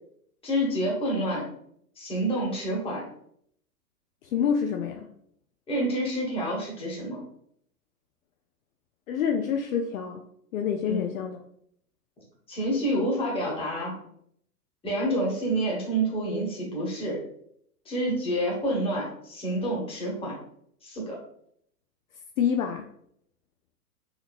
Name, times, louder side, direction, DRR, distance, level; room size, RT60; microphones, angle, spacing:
voice 1, 0.4-1.5 2.0-3.1 5.7-7.2 10.9-11.1 12.5-14.0 14.8-17.2 17.8-20.3 20.8-21.2, right 1 dB, 10° left, -3 dB, 1.2 m, -28 dB
voice 2, 4.2-5.1 9.1-10.2 10.5-11.4 22.4-22.9, left 7 dB, 60° left, 4 dB, 0.5 m, -27 dB
4.2 x 2.8 x 2.4 m, 0.68 s
figure-of-eight pair, 105°, 47 cm